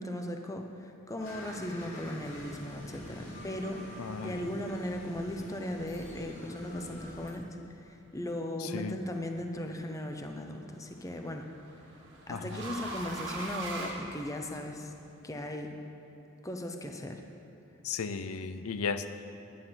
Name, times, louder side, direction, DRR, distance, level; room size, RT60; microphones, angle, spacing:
voice 1, 0.0-7.5 7.8-11.4 12.3-14.9 15.2-15.7 16.4-17.2, left 1 dB, 15° left, 4 dB, 0.7 m, -37 dB
sound 1, 1.2-7.3, equal, 65° left, 2.9 m, -45 dB
voice 2, 4.0-4.4 8.6-9.0 12.3-12.7 17.8-19.1, left 5 dB, 90° left, 11 dB, 0.5 m, -35 dB
sound 2, 8.9-9.4 10.8-14.8, right 2 dB, 60° right, 1.9 m, -41 dB
10.5 x 10.0 x 5.8 m, 3.0 s
head